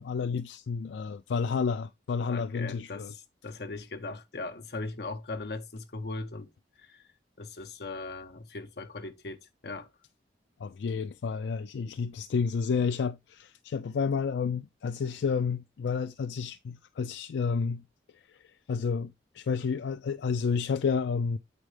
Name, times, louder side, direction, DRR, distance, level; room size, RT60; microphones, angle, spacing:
voice 1, 0.0-3.1 10.6-17.8 18.4-21.4, left 5 dB, 80° left, 0.4 m, -30 dB
voice 2, 2.3-6.5 6.8-7.0 7.4-9.9, left 3 dB, 65° left, 0.9 m, -39 dB
8.1 x 5.1 x 3.2 m
head